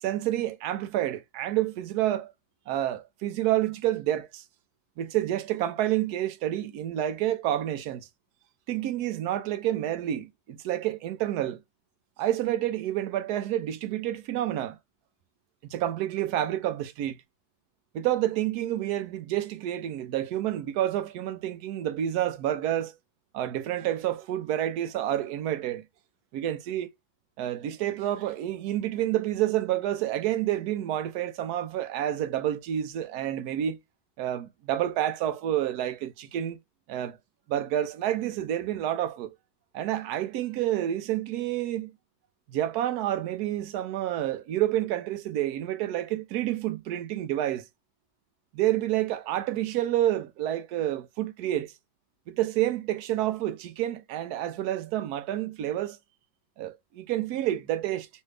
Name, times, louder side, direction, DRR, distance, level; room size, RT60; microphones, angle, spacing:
voice 1, 0.0-2.3 2.7-4.4 5.0-8.1 8.7-11.6 12.2-14.8 15.6-17.2 17.9-23.0 23.3-25.8 26.3-26.9 27.4-33.8 34.2-36.6 36.9-37.2 37.5-39.3 39.7-41.9 42.5-47.6 48.5-51.7 52.3-56.0 56.6-58.1, right 12 dB, 75° right, 1.1 m, -29 dB
3.2 x 2.6 x 3.2 m
omnidirectional pair, 1.7 m